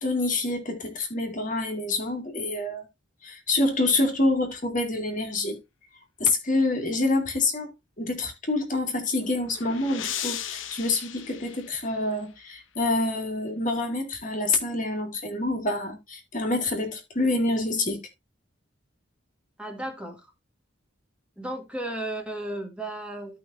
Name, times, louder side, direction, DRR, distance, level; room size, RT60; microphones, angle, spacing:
voice 1, 0.0-2.9 3.2-5.6 6.2-18.0, left 2 dB, 40° left, 2.0 m, -27 dB
sound 1, 8.9-12.3, left 10 dB, 80° left, 1.0 m, -37 dB
voice 2, 19.6-20.3 21.4-23.4, right 1 dB, 5° right, 1.9 m, -34 dB
14.5 x 5.6 x 2.6 m
head